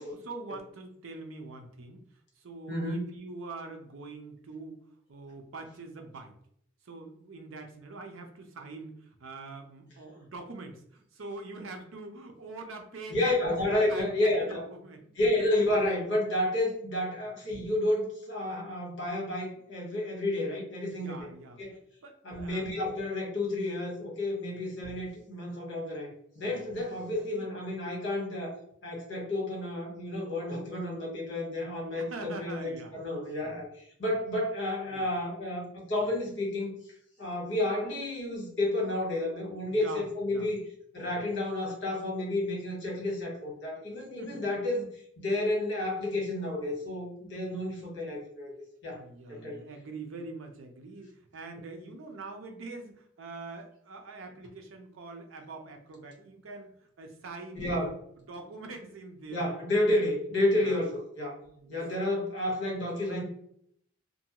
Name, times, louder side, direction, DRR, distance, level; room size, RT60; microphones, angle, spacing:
voice 1, 0.0-2.0 2.4-4.8 5.1-6.3 6.8-13.6 13.9-15.1 20.9-21.6 22.0-22.7 31.9-32.9 33.4-33.6 34.9-35.1 39.6-40.5 41.0-41.3 44.2-44.4 48.9-59.5 59.8-59.9 60.5-60.8 61.4-61.8 62.7-62.8, right 3 dB, 85° right, 5 dB, 0.6 m, -44 dB
voice 2, 2.7-3.2 13.1-14.7 15.2-21.3 21.6-21.7 22.2-36.7 37.2-40.6 40.9-44.9 45.2-49.0 49.3-49.6 57.5-57.9 59.3-61.3 61.7-63.2, left 1 dB, 60° left, -1 dB, 1.0 m, -31 dB
2.6 x 2.2 x 2.8 m, 0.69 s
head